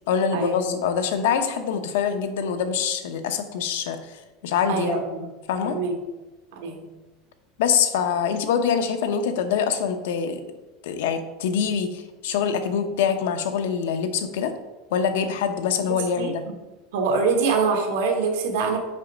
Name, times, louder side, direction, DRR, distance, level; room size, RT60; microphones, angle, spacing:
voice 1, 0.1-4.2 4.4-5.0 5.5-5.8 7.6-10.4 10.8-14.5 14.9-16.4, left 7 dB, 80° left, 8 dB, 0.7 m, -24 dB
voice 2, 4.7-5.2 5.6-5.9 6.6-6.8 15.9-16.3 16.9-18.8, right 5 dB, 70° right, 3 dB, 1.4 m, -24 dB
5.6 x 5.0 x 5.0 m, 1.1 s
supercardioid pair, 175°, 0 cm